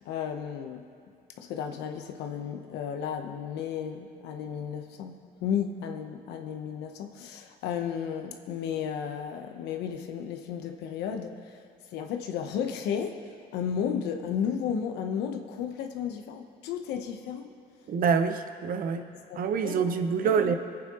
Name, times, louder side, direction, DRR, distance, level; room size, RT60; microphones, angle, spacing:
voice 1, 0.0-0.8 1.4-11.6 11.9-13.2 13.5-17.5 18.9-19.0 19.3-20.6, left 8 dB, 85° left, 5 dB, 0.9 m, -33 dB
voice 2, 17.9-19.0 19.4-20.6, right 6 dB, 55° right, 8 dB, 0.9 m, -26 dB
22.5 x 8.9 x 3.0 m, 2.4 s
cardioid pair, 110°, 17 cm